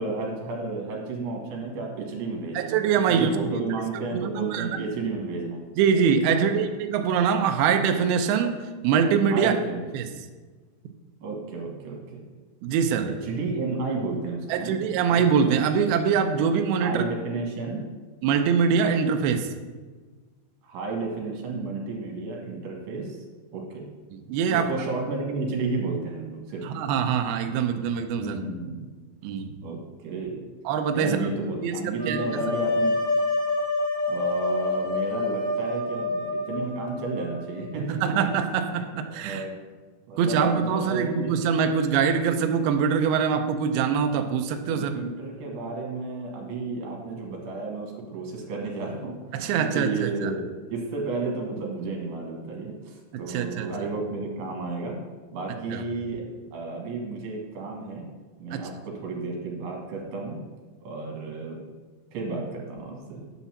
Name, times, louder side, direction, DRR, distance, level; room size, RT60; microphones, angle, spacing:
voice 1, 0.0-2.8 3.1-5.6 6.3-6.6 9.3-9.8 11.2-12.2 13.1-14.8 15.1-15.3 16.8-17.8 20.6-23.2 23.5-23.8 24.5-26.6 28.2-28.9 29.6-30.4 30.9-33.0 34.1-38.0 38.6-39.5 40.1-41.4 44.7-50.4 50.7-55.0 55.3-56.2 56.5-58.0 58.4-60.4 60.8-61.6 62.1-63.2, right 3 dB, 70° right, 0 dB, 3.5 m, -32 dB
voice 2, 2.5-3.6 4.1-4.8 5.8-9.5 9.9-10.1 12.6-13.1 14.5-17.0 18.2-19.5 24.3-24.7 26.6-28.4 29.2-29.6 30.7-31.2 31.6-32.3 38.0-39.4 40.2-44.9 49.3-50.3 53.3-53.7 55.7-55.8 58.5-58.6, right 6 dB, 90° right, 6 dB, 2.2 m, -23 dB
sound 1, 32.0-37.8, left 2 dB, 15° left, 1.8 m, -27 dB
9.1 x 4.2 x 7.1 m, 1.3 s
omnidirectional pair, 5.2 m